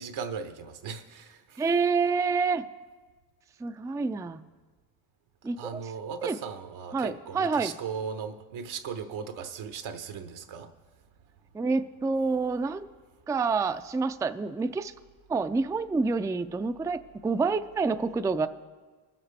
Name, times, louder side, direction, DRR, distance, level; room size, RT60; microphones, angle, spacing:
voice 1, 0.0-1.4 5.6-10.7, right 6 dB, 80° right, 8 dB, 1.1 m, -37 dB
voice 2, 1.6-2.6 3.6-4.4 5.4-5.9 6.2-6.4 6.9-7.7 11.5-12.9 13.3-14.9 15.3-18.5, right 4 dB, 10° right, 9 dB, 0.3 m, -28 dB
20.5 x 7.5 x 3.3 m, 1.4 s
supercardioid pair, 65°, 47 cm